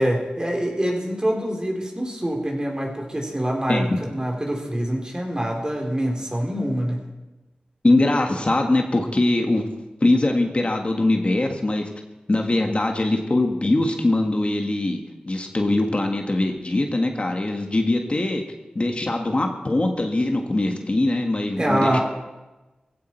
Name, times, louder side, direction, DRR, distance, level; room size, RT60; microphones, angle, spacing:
voice 1, 0.0-7.0 21.6-22.0, equal, 25° right, 0 dB, 3.7 m, -25 dB
voice 2, 7.8-9.7 10.0-11.9 12.3-15.0 15.2-18.4 18.7-22.0, left 2 dB, 40° left, 3 dB, 1.7 m, -22 dB
17.0 x 16.0 x 4.5 m, 1.1 s
wide cardioid pair, 55°, 3 cm